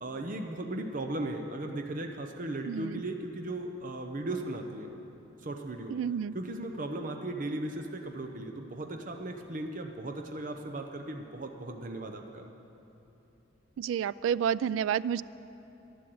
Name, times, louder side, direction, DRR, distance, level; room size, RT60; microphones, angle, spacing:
voice 1, 0.0-4.9 5.4-6.0 6.3-12.4, right 1 dB, 45° right, 4 dB, 0.8 m, -37 dB
voice 2, 2.6-3.0 5.9-6.3 13.8-15.2, right 8 dB, 90° right, 19 dB, 0.3 m, -30 dB
11.5 x 11.5 x 7.8 m, 2.9 s
head